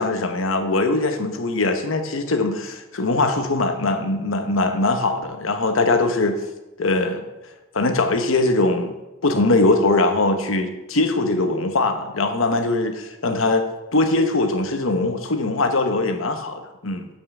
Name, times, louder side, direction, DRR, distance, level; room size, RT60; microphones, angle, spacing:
voice 1, 0.0-6.4 6.8-7.3 7.7-8.9 9.2-13.6 13.9-17.1, left 2 dB, 75° left, 7 dB, 0.9 m, -21 dB
7.2 x 5.5 x 6.5 m, 1.0 s
head